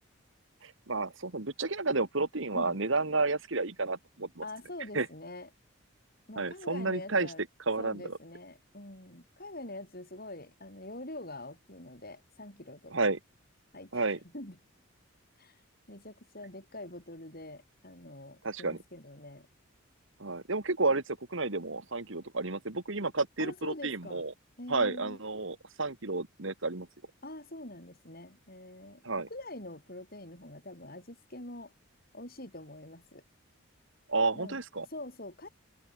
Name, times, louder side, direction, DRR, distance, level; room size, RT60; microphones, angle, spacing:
voice 1, 0.6-4.4 4.9-5.1 6.4-7.3 7.7-8.2 12.9-13.2 13.9-14.2 18.4-18.8 20.2-24.3 24.7-26.9 29.0-29.3 34.1-34.9, right 3 dB, 60° right, 1.7 m, -31 dB
voice 2, 4.4-5.5 6.3-7.4 7.8-13.1 13.7-14.6 15.4-15.6 15.9-19.5 23.4-24.2 24.6-25.2 27.2-29.0 29.3-31.7 32.1-33.2 34.3-35.5, left 1 dB, 45° left, 7.4 m, -45 dB
head